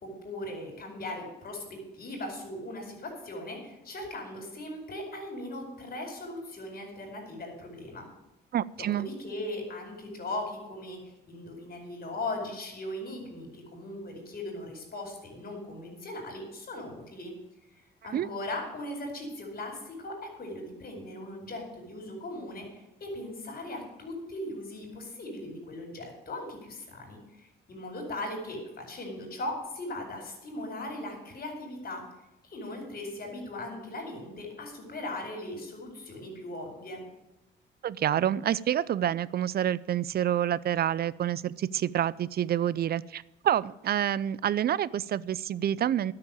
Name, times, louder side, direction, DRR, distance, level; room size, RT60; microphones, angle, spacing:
voice 1, 0.0-8.1 8.8-17.3 18.0-32.0 32.4-37.0, left 1 dB, 50° left, 4.8 m, -39 dB
voice 2, 8.5-9.1 18.1-18.3 37.8-46.1, right 10 dB, 50° right, 0.5 m, -28 dB
11.5 x 6.8 x 9.5 m
cardioid pair, 90°, 20 cm